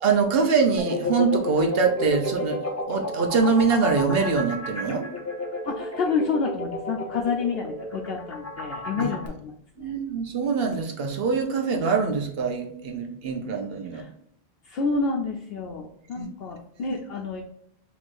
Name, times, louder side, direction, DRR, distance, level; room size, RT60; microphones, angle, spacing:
voice 1, 0.0-2.6 2.9-5.0 8.9-9.1 9.8-14.0 16.2-16.3, right 5 dB, 65° right, 4 dB, 0.9 m, -24 dB
sound 1, 0.8-9.3, left 2 dB, 15° left, 0.6 m, -32 dB
voice 2, 5.6-9.5 9.8-9.9 13.9-14.1 14.7-17.4, left 4 dB, 70° left, 1 dB, 0.8 m, -29 dB
6.2 x 3.0 x 2.5 m, 0.70 s
omnidirectional pair, 1.1 m